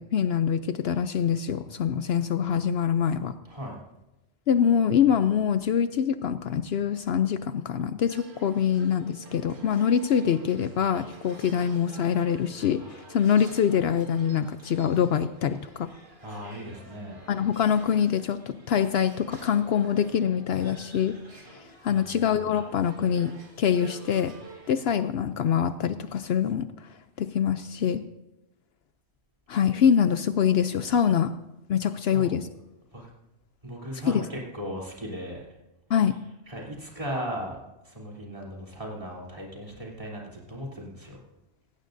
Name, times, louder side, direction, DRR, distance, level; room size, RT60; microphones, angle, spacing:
voice 1, 0.0-3.4 4.5-15.9 17.3-21.2 21.5-24.4 24.7-28.0 29.5-31.3 31.7-32.5 34.1-34.2 35.9-36.2, left 8 dB, 65° left, 11 dB, 0.8 m, -25 dB
voice 2, 3.4-3.8 16.2-17.2 21.9-22.5 32.0-32.6 32.9-33.1 33.6-35.4 35.9-36.1 36.4-41.2, equal, 30° right, -2 dB, 3.4 m, -37 dB
sound 1, 8.1-24.7, right 2 dB, 45° right, 2.2 m, -49 dB
17.5 x 16.0 x 2.6 m, 0.97 s
omnidirectional pair, 1.2 m